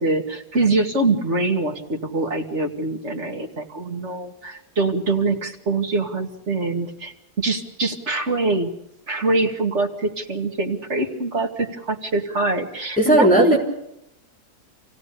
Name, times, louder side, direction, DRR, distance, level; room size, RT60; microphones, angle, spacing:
voice 1, 0.0-8.7 9.1-13.6, right 2 dB, 45° right, 2 dB, 2.5 m, -24 dB
voice 2, 13.0-13.6, right 1 dB, 5° left, -2 dB, 3.7 m, -15 dB
28.0 x 17.0 x 6.9 m, 0.84 s
omnidirectional pair, 1.6 m